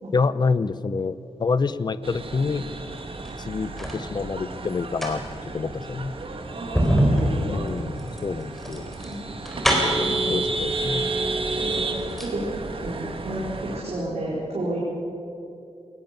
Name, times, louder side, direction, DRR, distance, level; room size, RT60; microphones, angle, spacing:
voice 1, 0.1-2.6 3.4-5.2 5.5-6.1 7.4-8.9 9.7-11.1, left 4 dB, 40° left, 15 dB, 0.6 m, -27 dB
sound 1, 2.0-13.8, right 3 dB, 55° right, 1.8 m, -31 dB
sound 2, 3.1-4.0 4.8-10.1 11.1-11.2 11.6-12.4 12.7-12.8, equal, ahead, 3.7 m, -25 dB
voice 2, 6.5-7.4 9.0-9.3 9.9-10.4 11.6-12.4 12.8-14.8, right 1 dB, 80° right, -6 dB, 4.6 m, -31 dB
22.0 x 19.0 x 6.8 m, 2.7 s
wide cardioid pair, 160°, 11 cm